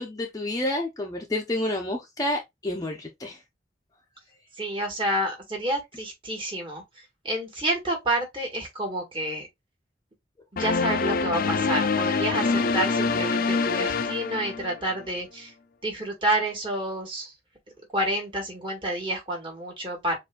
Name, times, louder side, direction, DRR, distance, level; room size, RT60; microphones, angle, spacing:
voice 1, 0.0-3.4, left 1 dB, 20° left, 0.7 m, -29 dB
voice 2, 4.6-6.8 7.2-9.5 10.5-15.5 15.8-17.3 17.9-20.2, right 1 dB, 30° right, 1.8 m, -29 dB
sound 1, 10.6-15.0, left 4 dB, 55° left, 0.5 m, -25 dB
6.9 x 2.6 x 2.3 m
head